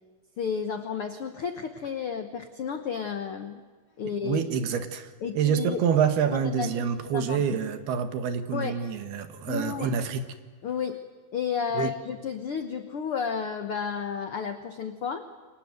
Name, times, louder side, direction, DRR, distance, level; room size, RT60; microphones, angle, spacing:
voice 1, 0.4-3.6 4.0-4.4 5.2-5.8 6.3-7.4 8.5-8.8 9.5-9.9 10.6-11.0 11.3-15.3, left 6 dB, 75° left, 8 dB, 1.2 m, -32 dB
voice 2, 4.2-10.2 11.7-11.9, right 7 dB, 85° right, 8 dB, 3.6 m, -27 dB
29.5 x 24.0 x 7.9 m, 1.4 s
omnidirectional pair, 4.4 m